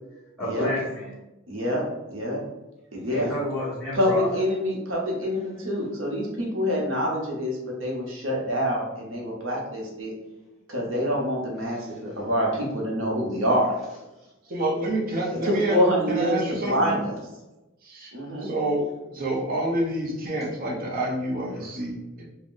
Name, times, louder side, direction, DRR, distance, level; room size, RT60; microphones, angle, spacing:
voice 1, 0.4-1.2 3.1-4.4, left 1 dB, ahead, -9 dB, 1.2 m, -30 dB
voice 2, 1.5-2.4 2.9-3.3 3.9-10.1 10.7-13.7 15.3-17.1 18.1-18.5, equal, 75° right, -2 dB, 0.8 m, -26 dB
voice 3, 14.5-15.8 16.1-16.9 17.8-18.1 18.4-22.2, right 1 dB, 45° right, -3 dB, 0.7 m, -28 dB
2.5 x 2.2 x 3.6 m, 1.0 s
head